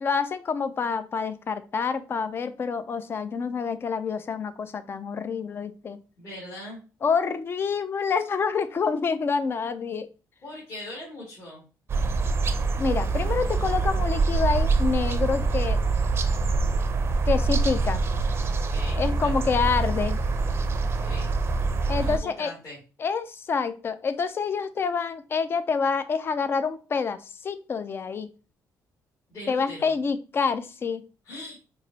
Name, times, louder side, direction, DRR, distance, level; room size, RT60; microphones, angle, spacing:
voice 1, 0.0-6.0 7.0-10.1 12.8-15.8 17.2-18.0 19.0-20.2 21.9-22.5 23.0-28.3 29.5-31.0, left 5 dB, 35° left, 12 dB, 0.4 m, -27 dB
voice 2, 6.2-6.8 10.4-11.6 18.5-19.5 21.0-21.3 22.0-22.8 29.3-29.9 31.2-31.6, left 1 dB, 50° left, -6 dB, 2.1 m, -40 dB
sound 1, 11.9-22.2, right 3 dB, 40° right, 0.5 m, -25 dB
4.6 x 2.9 x 2.7 m, 0.34 s
cardioid pair, 115°, 7 cm